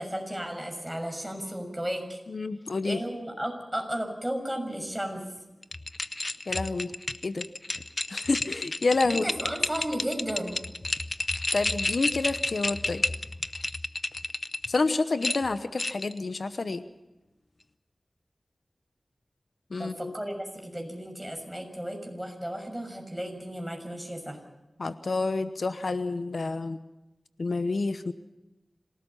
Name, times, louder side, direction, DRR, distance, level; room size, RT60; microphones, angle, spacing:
voice 1, 0.0-2.2 2.8-5.2 9.0-10.6 19.8-24.4, equal, 10° right, 4 dB, 6.4 m, -34 dB
voice 2, 2.3-3.0 6.5-6.9 7.2-7.4 8.1-9.2 11.5-13.0 14.7-16.8 19.7-20.1 24.8-26.8 27.4-28.1, left 3 dB, 75° left, 11 dB, 0.9 m, -28 dB
sound 1, 5.6-14.8 15.2-16.2, left 2 dB, 45° left, 0.8 m, -31 dB
27.0 x 18.0 x 5.6 m, 1.0 s
wide cardioid pair, 55°, 0 cm